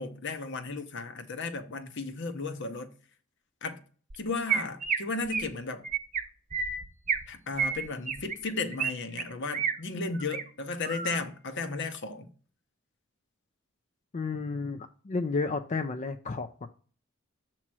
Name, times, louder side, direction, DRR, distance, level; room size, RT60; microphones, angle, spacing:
voice 1, 0.0-2.9 3.6-3.8 4.2-5.9 7.3-12.3, left 3 dB, 60° left, 0.8 m, -34 dB
Chirp tweet, 4.1-4.2 4.5-5.0 5.3-5.5 5.8-6.2 6.5-7.2 7.6-8.9 9.2-9.7 10.1-10.4 10.8-11.2, right 6 dB, 40° right, 0.7 m, -30 dB
voice 2, 14.1-16.7, left 4 dB, 35° left, 0.4 m, -32 dB
7.3 x 3.0 x 6.0 m
head